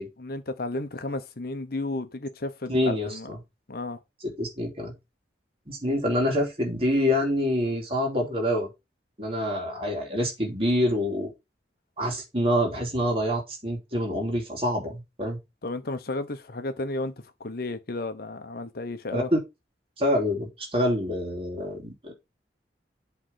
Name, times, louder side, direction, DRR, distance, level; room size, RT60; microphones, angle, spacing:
voice 1, 0.2-3.3 3.7-4.0 15.6-17.1 17.4-19.3, left 2 dB, 55° left, 0.9 m, -33 dB
voice 2, 2.7-3.4 4.2-4.9 5.7-8.7 9.2-11.3 12.0-15.4 19.1-19.4 20.0-22.1, left 1 dB, 30° right, 2.9 m, -26 dB
7.8 x 3.5 x 5.7 m
head